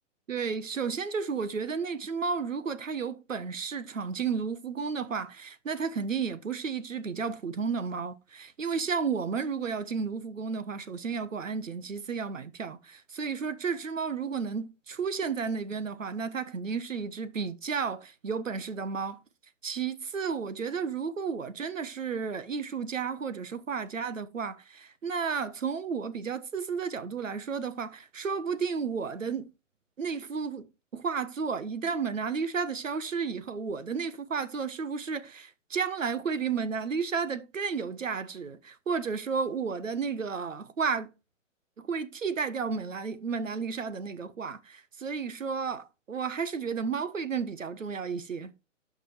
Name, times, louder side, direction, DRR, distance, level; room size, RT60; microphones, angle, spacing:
voice 1, 0.3-19.2 19.6-29.5 30.0-41.1 41.8-48.5, right 5 dB, 85° right, 1.2 m, -32 dB
12.0 x 5.2 x 3.3 m
hypercardioid pair, 135°, 38 cm